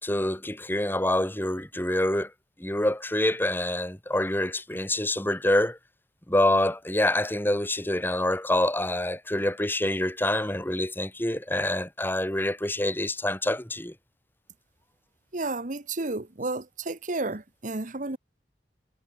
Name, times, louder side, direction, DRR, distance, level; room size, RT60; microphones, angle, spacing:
voice 1, 0.0-2.3 2.6-5.8 6.3-13.9, left 1 dB, 10° left, 2.8 m, -26 dB
voice 2, 15.3-18.2, right 2 dB, 45° right, 1.3 m, -32 dB
head